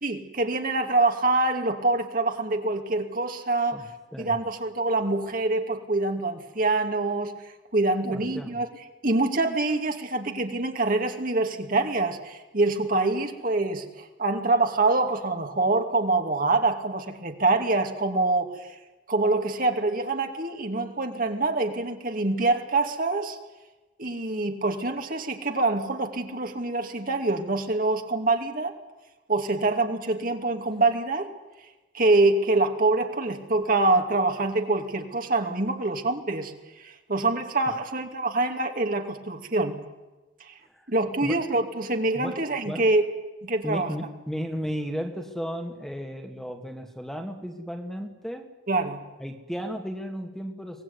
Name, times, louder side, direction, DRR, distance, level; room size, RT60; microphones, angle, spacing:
voice 1, 0.0-3.8 4.2-7.3 7.7-8.7 9.0-18.7 19.1-23.4 24.0-28.7 29.3-31.3 31.9-36.5 36.8-39.8 40.5-40.6 40.9-43.0 43.4-43.9 48.7-49.0, right 2 dB, 50° right, 4 dB, 2.7 m, -25 dB
voice 2, 3.7-4.4 8.1-8.6 37.7-37.8 40.7-40.9 41.2-41.4 42.1-42.4 42.7-42.8 43.6-48.5 49.2-50.8, equal, ahead, 5 dB, 2.2 m, -34 dB
24.0 x 19.5 x 9.8 m, 1.1 s
head